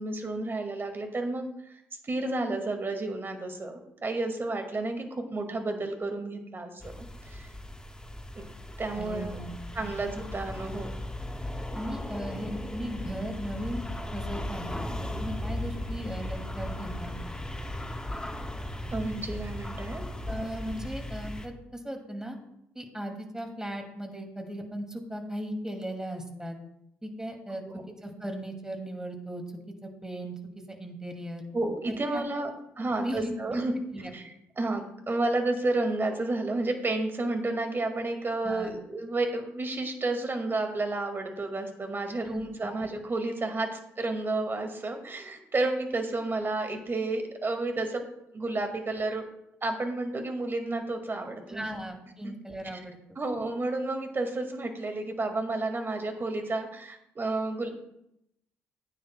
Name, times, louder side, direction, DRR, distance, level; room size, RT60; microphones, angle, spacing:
voice 1, 0.0-1.8 2.0-7.5 8.3-8.4 8.8-9.4 9.7-10.9 18.9-20.0 27.6-27.8 31.5-32.5 32.8-33.7 34.1-48.0 48.3-49.2 49.6-51.7 52.2-52.3 52.7-52.8 53.2-57.7, right 2 dB, 30° right, 5 dB, 1.9 m, -31 dB
sound 1, 6.8-21.5, left 1 dB, 10° left, 1.3 m, -37 dB
voice 2, 8.9-9.5 9.8-10.2 10.5-10.6 11.7-13.8 14.1-17.2 20.3-22.4 22.7-26.6 27.0-27.6 28.0-29.4 29.8-31.4 31.9-32.2 33.0-33.6 33.9-34.1 38.4-38.7 42.2-42.7 51.5-53.0, equal, 10° right, 4 dB, 2.3 m, -37 dB
15.0 x 9.3 x 2.2 m, 0.80 s
hypercardioid pair, 45°, 7 cm